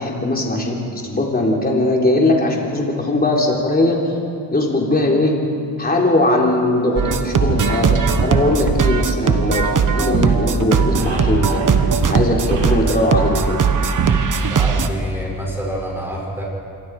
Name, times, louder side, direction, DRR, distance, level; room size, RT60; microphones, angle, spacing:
voice 1, 0.0-4.0 4.5-5.4 5.8-11.7 12.1-13.6, left 2 dB, 20° left, -1 dB, 3.6 m, -19 dB
sound 1, 7.0-14.9, right 5 dB, 45° right, 1.3 m, -18 dB
sound 2, 9.2-10.3 10.6-14.3, right 2 dB, 80° right, 6.3 m, -33 dB
voice 2, 14.5-16.5, equal, 5° right, -3 dB, 6.5 m, -27 dB
27.0 x 23.0 x 4.9 m, 2.5 s
cardioid pair, 110°, 45 cm